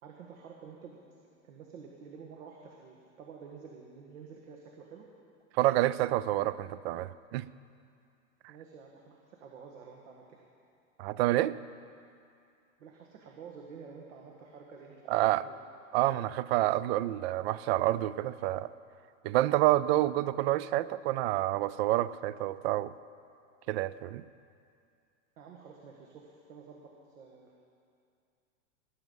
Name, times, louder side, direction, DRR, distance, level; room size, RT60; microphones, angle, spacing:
voice 1, 0.0-5.0 8.5-10.4 12.8-15.1 15.3-15.6 25.4-27.6, right 5 dB, 80° right, 0 dB, 1.7 m, -50 dB
voice 2, 5.6-7.5 11.0-11.6 15.1-15.4 15.9-18.7 19.2-22.9 23.7-24.2, right 15 dB, 50° right, 18 dB, 0.5 m, -28 dB
19.0 x 9.4 x 5.4 m, 2.4 s
supercardioid pair, 145°, 39 cm